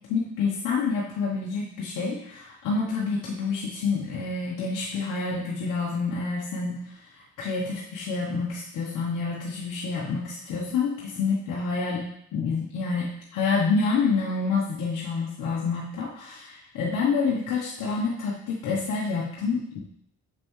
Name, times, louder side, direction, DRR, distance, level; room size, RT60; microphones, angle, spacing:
voice 1, 0.1-19.8, left 4 dB, 85° left, -4 dB, 1.1 m, -28 dB
6.6 x 5.4 x 3.1 m, 0.70 s
cardioid pair, 90°, 30 cm